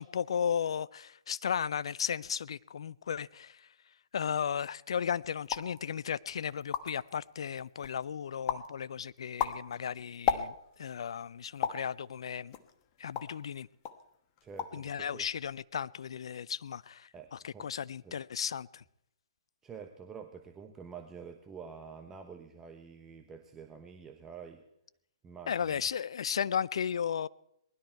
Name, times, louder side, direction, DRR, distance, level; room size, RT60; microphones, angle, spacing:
voice 1, 0.0-3.7 4.1-12.5 13.0-13.7 14.7-18.8 25.5-27.3, left 7 dB, 65° left, 20 dB, 0.5 m, -35 dB
sound 1, 5.4-5.8 6.3-6.4 6.6-7.1 7.6-8.0 8.5-8.7 9.2-10.8 11.6-11.9 12.5-13.4 13.8-14.0 14.4-14.9 15.1-15.6, left 9 dB, 35° left, 1.1 m, -34 dB
voice 2, 14.4-15.3 17.1-17.7 18.0-18.2 19.6-24.6 25.2-25.8, right 6 dB, 15° right, 5 dB, 1.0 m, -48 dB
19.5 x 12.0 x 4.6 m, 0.78 s
figure-of-eight pair, 130°, 3 cm